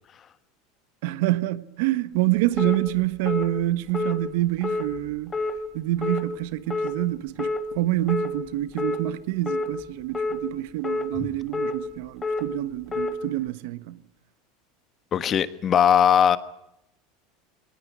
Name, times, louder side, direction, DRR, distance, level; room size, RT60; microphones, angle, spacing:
voice 1, 1.0-5.4 5.7-14.0, right 16 dB, 75° right, 1.1 m, -27 dB
sound 1, 2.6-2.8 3.3-3.5 3.9-4.2 4.6-4.8 5.3-5.5 6.0-6.2 6.7-6.9 7.4-7.6 8.1-8.3 8.8-9.0 9.5-9.7 10.1-10.4 10.8-11.1 11.5-11.7 12.2-12.4 12.9-13.1, left 3 dB, 20° left, 2.7 m, -27 dB
voice 2, 15.1-16.4, left 9 dB, 35° left, 1.3 m, -19 dB
20.5 x 19.0 x 9.8 m
supercardioid pair, 115°, 0 cm